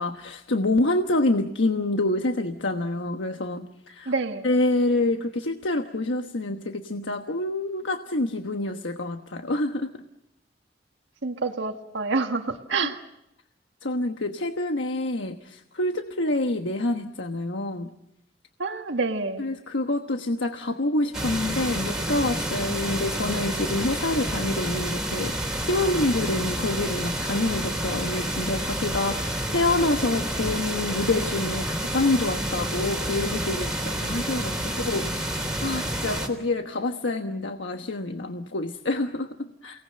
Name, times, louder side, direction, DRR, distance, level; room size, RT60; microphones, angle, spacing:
voice 1, 0.0-4.1 4.4-10.0 12.8-12.9 13.8-17.9 19.4-39.8, left 2 dB, 90° left, 5 dB, 1.3 m, -27 dB
voice 2, 4.1-4.5 11.2-13.0 18.6-19.4, right 3 dB, 80° right, 5 dB, 1.6 m, -27 dB
sound 1, 21.1-36.3, right 1 dB, 5° right, 3.4 m, -29 dB
29.5 x 19.0 x 7.7 m, 0.87 s
head